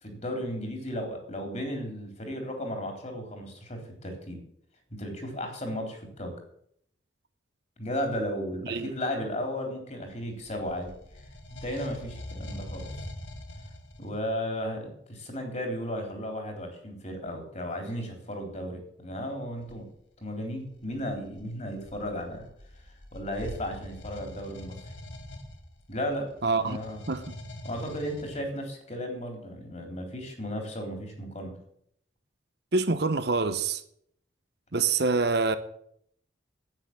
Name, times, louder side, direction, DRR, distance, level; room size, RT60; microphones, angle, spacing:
voice 1, 0.0-4.4 4.9-6.3 7.8-10.9 11.6-12.8 14.0-19.9 20.2-22.4 23.1-24.8 25.9-26.3 26.6-27.0 27.6-31.5, equal, 35° left, 3.6 m, -34 dB
sound 1, 10.2-14.3 19.6-19.8 20.6-28.4, left 1 dB, 75° left, 2.0 m, -43 dB
voice 2, 26.4-26.8 27.1-27.2 32.7-33.8 34.7-35.6, right 4 dB, 55° right, 0.9 m, -25 dB
10.0 x 9.1 x 9.6 m
head